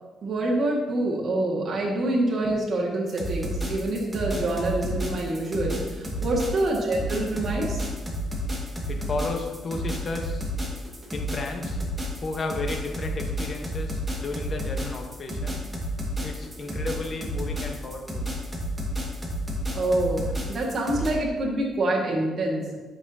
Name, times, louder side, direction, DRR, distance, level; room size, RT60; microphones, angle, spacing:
voice 1, 0.2-7.9 19.7-22.8, right 2 dB, 45° right, -4 dB, 1.8 m, -26 dB
sound 1, 3.1-21.1, equal, 20° right, 1.8 m, -31 dB
voice 2, 8.9-10.5 11.1-11.8 12.2-15.6 16.2-18.3, left 3 dB, 45° left, 3 dB, 1.1 m, -33 dB
10.5 x 5.9 x 2.8 m, 1.3 s
cardioid pair, 90°, 0 cm